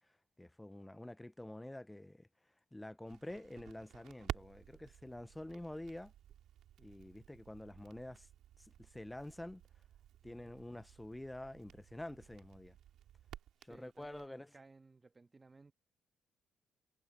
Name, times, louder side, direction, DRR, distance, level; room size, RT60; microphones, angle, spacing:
voice 1, 0.4-2.3 2.7-6.1 6.8-8.3 8.6-9.6 10.2-12.8 13.6-14.5, left 1 dB, 10° left, 0.4 m, -48 dB
Crackle, 3.1-14.3, right 11 dB, 80° right, 2.8 m, -53 dB
voice 2, 13.7-15.7, right 3 dB, 25° right, 1.4 m, -60 dB
cardioid pair, 90°, 0 cm